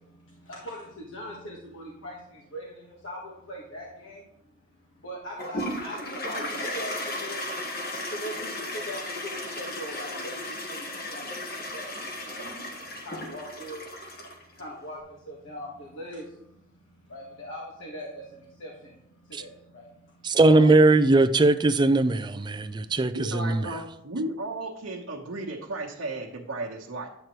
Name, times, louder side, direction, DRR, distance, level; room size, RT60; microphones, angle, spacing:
voice 1, 0.0-7.5 8.1-20.7 22.6-23.2, equal, 65° left, 1.4 m, -42 dB
Toilet flush, 5.4-14.6, left 1 dB, 45° left, 1.4 m, -35 dB
voice 2, 20.2-23.6, right 2 dB, 20° right, 0.3 m, -20 dB
voice 3, 23.1-27.1, right 2 dB, 80° right, 1.1 m, -34 dB
10.5 x 8.0 x 3.1 m
head